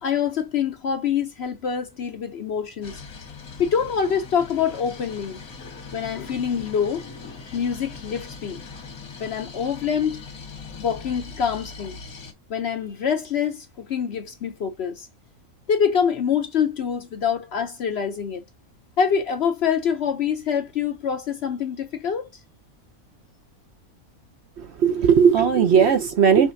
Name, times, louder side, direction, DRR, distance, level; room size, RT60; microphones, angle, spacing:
voice 1, 0.0-3.0 3.6-5.4 5.9-7.1 7.5-8.6 9.2-10.2 10.8-12.0 12.5-15.1 15.7-18.4 19.0-22.3, left 7 dB, 60° left, 0.8 m, -25 dB
sound 1, 2.8-12.3, left 4 dB, 85° left, 1.8 m, -40 dB
voice 2, 24.6-26.5, right 7 dB, 60° right, 0.8 m, -17 dB
5.6 x 3.1 x 2.6 m
omnidirectional pair, 1.5 m